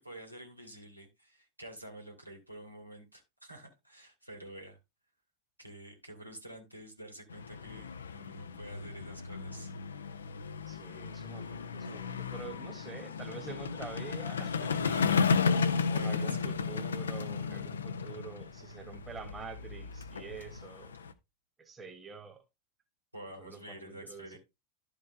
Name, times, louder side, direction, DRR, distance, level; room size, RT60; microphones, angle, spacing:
voice 1, 0.0-4.8 5.6-9.7 14.9-16.6 23.1-24.4, right 1 dB, 90° right, 2.2 m, -49 dB
sound 1, 7.3-21.1, left 5 dB, 70° left, 0.7 m, -34 dB
voice 2, 10.7-15.3 15.9-21.1 21.6-22.4 23.4-24.4, right 5 dB, 15° right, 1.7 m, -46 dB
12.0 x 4.9 x 3.3 m
figure-of-eight pair, 90°, 0 cm